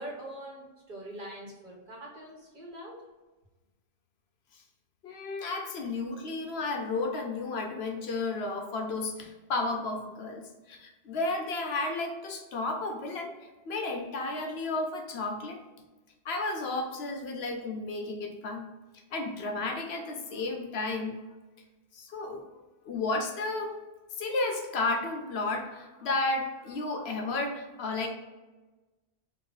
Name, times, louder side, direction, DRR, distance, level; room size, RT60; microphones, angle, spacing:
voice 1, 0.0-3.0, right 1 dB, 50° right, -4 dB, 1.4 m, -43 dB
voice 2, 5.0-10.4 10.7-13.4 13.7-15.6 16.2-18.7 19.1-21.2 21.9-22.5 22.8-23.7 24.2-28.1, left 3 dB, 70° left, 3 dB, 0.9 m, -32 dB
3.9 x 2.6 x 3.9 m, 1.2 s
omnidirectional pair, 1.1 m